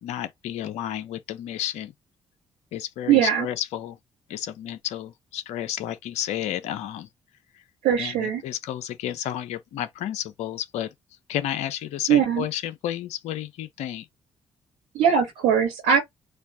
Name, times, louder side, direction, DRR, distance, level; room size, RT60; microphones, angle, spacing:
voice 1, 0.0-1.9 2.7-4.0 4.3-7.1 8.0-10.9 11.3-14.1, left 11 dB, 75° left, 0.7 m, -31 dB
voice 2, 3.1-3.5 7.8-8.4 12.1-12.5 14.9-16.0, right 8 dB, 75° right, 1.3 m, -20 dB
4.3 x 2.4 x 3.6 m
hypercardioid pair, 45°, 12 cm